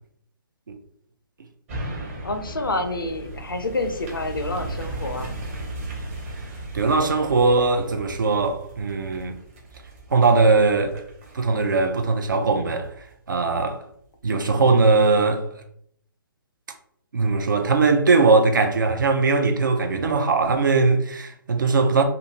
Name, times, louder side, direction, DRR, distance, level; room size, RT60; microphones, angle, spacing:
sound 1, 1.7-13.1 13.6-13.7, right 2 dB, 35° right, 1.0 m, -36 dB
voice 1, 2.2-5.3, left 2 dB, 75° left, 0.5 m, -28 dB
voice 2, 6.7-9.4 10.1-11.1 11.3-12.9 13.3-13.8 14.2-15.5 17.1-22.0, right 4 dB, 60° right, 0.5 m, -20 dB
2.6 x 2.6 x 2.8 m
figure-of-eight pair, 130°, 12 cm